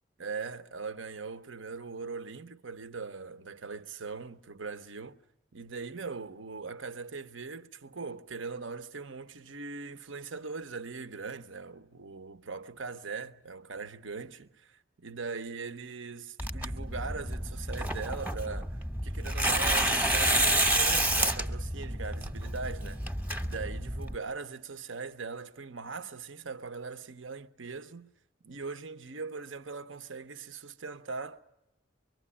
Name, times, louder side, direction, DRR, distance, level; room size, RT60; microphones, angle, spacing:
voice 1, 0.2-5.2 5.5-23.0 23.4-28.1 28.4-31.4, right 4 dB, 85° right, 1.0 m, -40 dB
Tearing, 16.4-24.1, right 1 dB, 10° right, 0.9 m, -29 dB
25.0 x 23.0 x 9.8 m
head